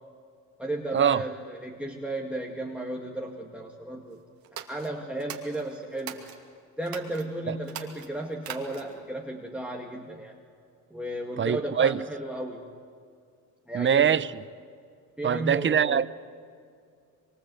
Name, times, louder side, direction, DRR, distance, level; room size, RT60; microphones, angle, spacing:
voice 1, 0.6-4.2 4.7-6.2 6.8-10.4 10.9-12.6 13.7-14.2 15.2-16.1, right 1 dB, 5° right, 2.2 m, -34 dB
sound 1, 4.4-6.4 6.8-7.2 7.6-9.0, right 9 dB, 65° right, 2.6 m, -41 dB
voice 2, 11.4-12.0 13.7-14.3 15.2-16.1, right 8 dB, 30° right, 0.7 m, -23 dB
24.5 x 24.0 x 8.0 m
supercardioid pair, 85°, 38 cm